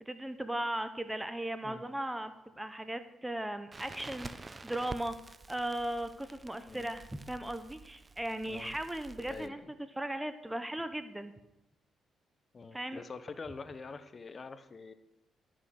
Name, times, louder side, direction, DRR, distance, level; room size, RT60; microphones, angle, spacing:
voice 1, 0.0-5.1 5.5-9.6 10.0-11.3 12.7-13.0, right 1 dB, 10° right, 10 dB, 0.8 m, -37 dB
Crackle, 3.7-9.5, right 3 dB, 30° right, 0.5 m, -49 dB
voice 2, 8.5-8.8 9.3-9.7 12.5-14.9, left 4 dB, 40° left, 12 dB, 0.8 m, -45 dB
12.0 x 6.0 x 6.4 m, 0.94 s
cardioid pair, 70°, 0 cm